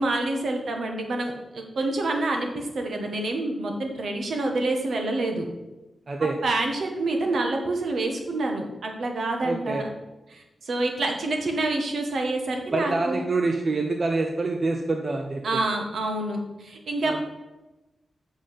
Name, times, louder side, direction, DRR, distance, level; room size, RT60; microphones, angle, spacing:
voice 1, 0.0-5.5 6.4-9.9 10.3-13.2 15.4-17.2, right 2 dB, 70° right, 3 dB, 1.4 m, -27 dB
voice 2, 6.1-6.4 9.4-9.8 12.7-15.6 17.0-17.2, right 3 dB, 40° right, 3 dB, 0.7 m, -26 dB
7.2 x 5.2 x 5.6 m, 1.0 s
wide cardioid pair, 125°, 0 cm